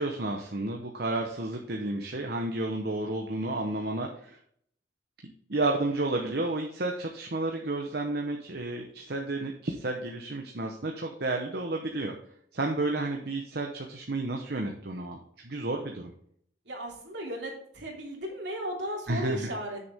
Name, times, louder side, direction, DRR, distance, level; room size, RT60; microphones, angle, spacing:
voice 1, 0.0-4.4 5.2-12.1 12.5-15.2 15.4-16.1 19.1-19.5, right 2 dB, 55° right, 2 dB, 1.0 m, -31 dB
voice 2, 16.6-19.8, equal, 70° right, -1 dB, 2.9 m, -35 dB
8.2 x 6.8 x 3.5 m, 0.66 s
head